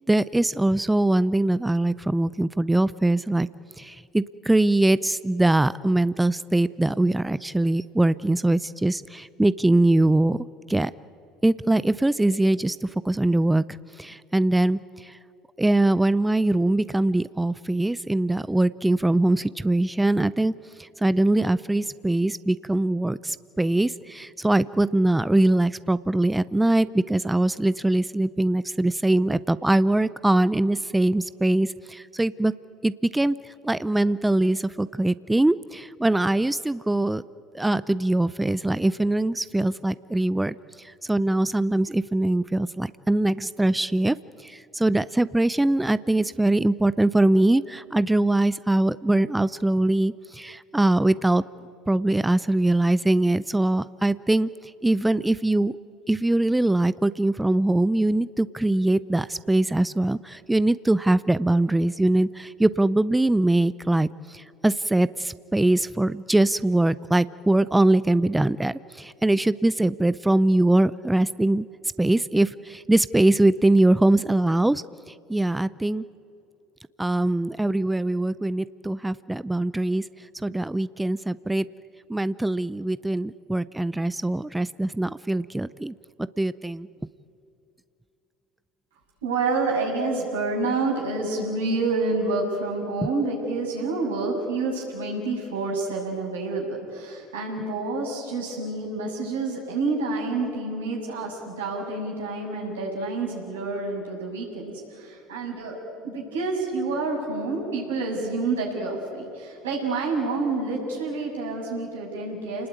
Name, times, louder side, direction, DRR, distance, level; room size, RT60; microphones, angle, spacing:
voice 1, 0.1-3.5 3.8-10.4 10.7-10.9 11.4-13.6 14.0-15.2 15.6-32.5 32.8-37.2 37.5-51.4 51.9-55.8 56.1-71.7 72.0-76.0 77.0-81.7 82.1-85.9 86.4-86.9, right 1 dB, 10° right, 17 dB, 0.6 m, -22 dB
voice 2, 89.2-105.7 106.0-112.7, right 3 dB, 85° right, -1 dB, 7.3 m, -28 dB
29.5 x 20.0 x 9.5 m, 2.7 s
hypercardioid pair, 70°, 0 cm